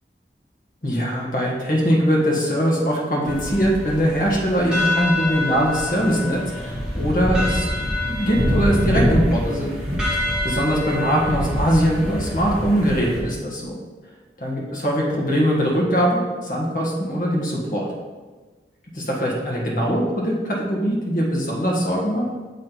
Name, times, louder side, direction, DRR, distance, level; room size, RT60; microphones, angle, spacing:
voice 1, 0.8-7.7 8.0-9.7 10.1-13.7 14.4-17.9 18.9-22.2, equal, 50° left, -3 dB, 1.4 m, -21 dB
sound 1, 3.3-13.2, left 1 dB, 5° right, 1.3 m, -25 dB
7.3 x 4.0 x 4.5 m, 1.3 s
head